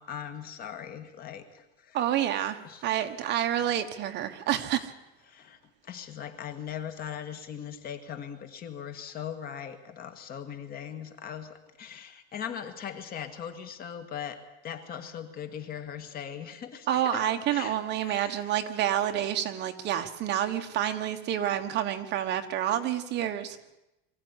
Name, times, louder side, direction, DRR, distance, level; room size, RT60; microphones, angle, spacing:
voice 1, 0.0-2.0 2.6-2.8 5.3-17.2 17.5-17.8 18.0-18.6, left 8 dB, 30° left, 8 dB, 2.0 m, -40 dB
voice 2, 1.9-4.9 16.9-23.6, right 11 dB, 35° right, 7 dB, 1.4 m, -28 dB
23.5 x 15.0 x 9.8 m, 0.93 s
supercardioid pair, 165°, 31 cm